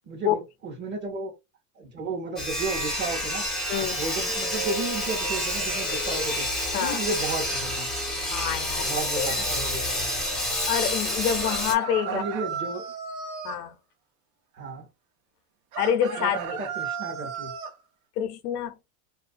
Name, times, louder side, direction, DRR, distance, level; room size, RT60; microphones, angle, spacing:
voice 1, 0.1-1.3 1.8-3.5 3.8-6.5 6.8-7.9 8.8-10.1 11.9-12.8 14.5-14.9 16.2-17.5, right 3 dB, 25° right, 0.8 m, -33 dB
Sawing, 2.4-11.7, left 1 dB, ahead, 0.4 m, -28 dB
voice 2, 3.7-4.0 6.7-7.0 8.3-9.3 10.7-12.2 13.4-13.8 15.8-16.4 18.2-18.7, left 9 dB, 90° left, 0.6 m, -27 dB
sound 1, 11.4-13.6 15.7-17.7, right 6 dB, 70° right, 0.8 m, -34 dB
2.3 x 2.2 x 2.4 m
supercardioid pair, 125°, 45 cm